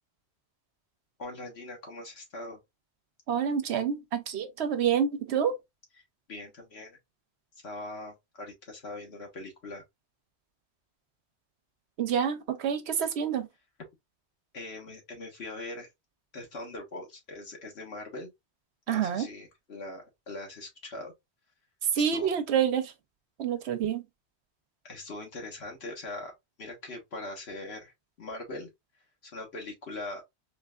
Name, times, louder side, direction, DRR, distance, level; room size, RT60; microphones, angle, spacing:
voice 1, 1.2-2.6 6.3-7.0 7.6-9.8 14.5-15.9 16.3-18.3 18.9-21.1 22.0-22.3 24.8-26.3 26.6-27.9 28.2-28.7 29.2-30.2, left 2 dB, 70° left, 1.6 m, -41 dB
voice 2, 3.3-5.5 12.0-13.5 18.9-19.3 21.9-22.9 23.4-24.0, right 8 dB, 75° right, 0.9 m, -28 dB
3.9 x 3.3 x 2.3 m
omnidirectional pair, 1.1 m